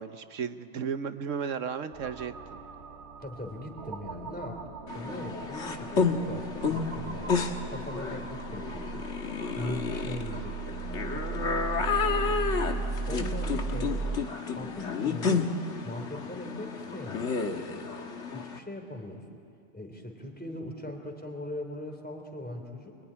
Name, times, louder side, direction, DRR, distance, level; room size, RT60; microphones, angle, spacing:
voice 1, 0.0-2.6 11.8-12.4, right 6 dB, 85° right, 11 dB, 1.3 m, -35 dB
sound 1, 1.9-14.2, right 5 dB, 65° right, 1.4 m, -37 dB
voice 2, 3.2-4.6 4.9-9.1 9.6-11.3 13.1-14.2 14.5-15.5 15.8-17.3 18.3-19.4 19.7-23.0, left 1 dB, 5° left, 2 dB, 3.1 m, -40 dB
sound 2, 4.9-18.6, left 5 dB, 70° left, 1.7 m, -31 dB
25.0 x 24.0 x 9.9 m, 2.3 s
omnidirectional pair, 1.3 m